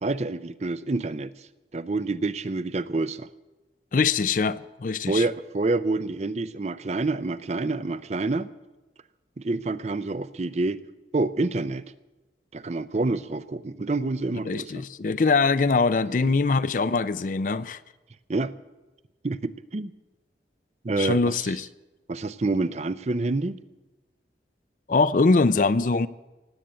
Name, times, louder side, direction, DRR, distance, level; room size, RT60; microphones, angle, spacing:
voice 1, 0.0-3.3 5.1-8.5 9.4-10.8 11.1-11.9 12.5-14.8 18.3-18.6 19.2-19.9 20.8-21.5 22.1-23.6, right 2 dB, 40° right, 0.5 m, -27 dB
voice 2, 3.9-5.3 14.4-17.8 21.0-21.7 24.9-26.1, left 4 dB, 45° left, 0.4 m, -23 dB
17.5 x 8.2 x 8.8 m
head